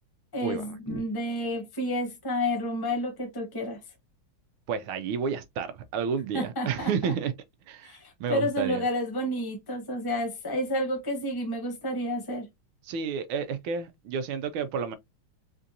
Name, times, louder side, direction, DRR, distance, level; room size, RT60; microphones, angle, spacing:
voice 1, 0.3-3.8 6.3-7.1 7.8-12.5, left 1 dB, 15° left, 1.0 m, -30 dB
voice 2, 4.7-7.3 7.7-8.8 12.8-15.0, right 6 dB, 80° right, 1.4 m, -31 dB
4.4 x 2.5 x 2.6 m
omnidirectional pair, 2.2 m